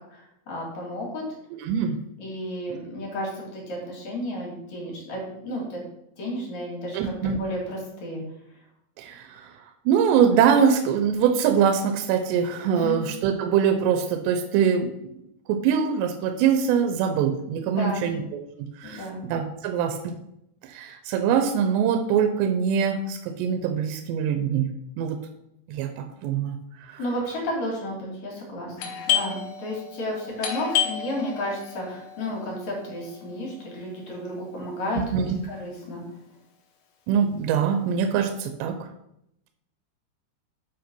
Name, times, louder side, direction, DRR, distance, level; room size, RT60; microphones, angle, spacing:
voice 1, 0.5-1.2 2.2-5.8 6.2-8.2 12.7-13.0 17.8-18.1 18.8-19.2 27.0-36.0, left 1 dB, 50° left, -2 dB, 3.0 m, -32 dB
voice 2, 1.5-2.0 6.9-7.4 9.0-9.5 9.9-15.1 15.5-18.4 18.8-20.1 20.6-24.7 25.0-25.2 25.7-26.6 26.9-27.0 34.9-35.4 37.1-38.8, right 7 dB, 85° right, 7 dB, 2.8 m, -23 dB
Doorbell, 28.8-34.2, left 9 dB, 85° left, 1.6 m, -31 dB
7.9 x 4.6 x 5.2 m, 0.80 s
omnidirectional pair, 4.9 m